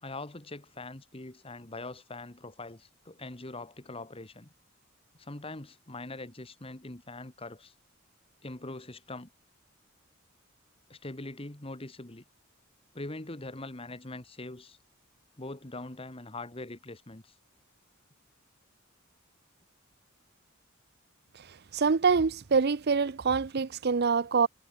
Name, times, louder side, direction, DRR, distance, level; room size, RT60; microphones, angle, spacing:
voice 1, 0.0-4.5 5.1-7.7 8.4-9.3 10.9-12.2 12.9-14.8 15.4-17.3, left 2 dB, 30° left, 1.8 m, -42 dB
voice 2, 21.7-24.5, right 5 dB, 50° right, 0.6 m, -25 dB
head